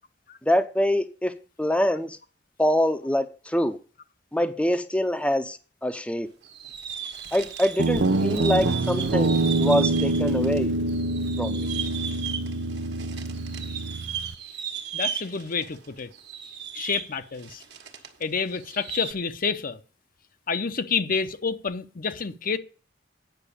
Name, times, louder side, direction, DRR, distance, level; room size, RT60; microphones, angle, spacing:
voice 1, 0.5-1.3 1.6-2.2 2.6-3.8 4.3-6.3 7.3-10.7 11.4-11.7, left 1 dB, 5° left, 0.7 m, -25 dB
sound 1, 6.4-10.6 10.9-18.2 18.5-19.1, right 8 dB, 65° right, 1.5 m, -36 dB
Guitar, 7.8-14.3, right 2 dB, 80° right, 0.7 m, -25 dB
voice 2, 14.9-16.1 16.7-17.6 18.2-19.8 20.5-22.6, left 5 dB, 50° left, 0.8 m, -28 dB
9.2 x 6.0 x 8.4 m
head